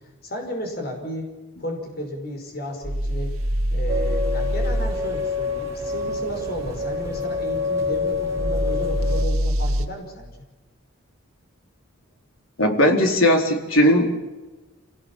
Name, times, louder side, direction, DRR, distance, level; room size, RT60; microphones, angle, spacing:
voice 1, 0.2-1.3 1.6-3.3 3.7-10.3, equal, 50° left, 3 dB, 5.4 m, -33 dB
sound 1, 2.8-5.0 8.3-9.9, equal, 90° right, 2.2 m, -24 dB
sound 2, 3.9-9.2, left 3 dB, 15° right, 5.6 m, -27 dB
voice 2, 12.6-14.2, equal, 75° left, 3 dB, 4.2 m, -18 dB
26.5 x 19.0 x 7.4 m, 1.2 s
head